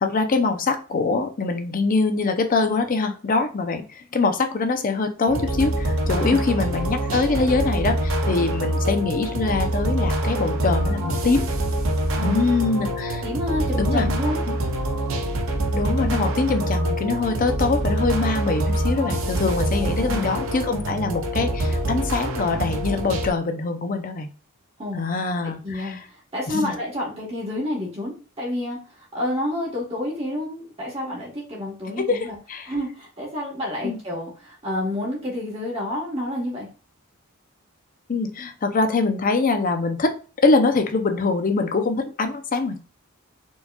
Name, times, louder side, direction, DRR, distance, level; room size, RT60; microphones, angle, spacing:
voice 1, 0.0-11.4 12.2-13.2 13.8-14.1 14.5-14.6 15.7-24.3 24.9-26.0 26.5-26.7 32.0-32.7 33.8-34.0 38.1-40.2 40.4-42.8, left 3 dB, 40° left, 6 dB, 0.5 m, -23 dB
sound 1, 5.3-23.3, right 1 dB, 60° right, 0.6 m, -25 dB
voice 2, 12.1-12.4 13.2-14.4 19.8-20.4 24.8-25.0 25.4-28.8 29.1-32.4 32.7-36.7, left 1 dB, 25° right, -4 dB, 1.0 m, -29 dB
4.4 x 2.9 x 2.2 m, 0.37 s
head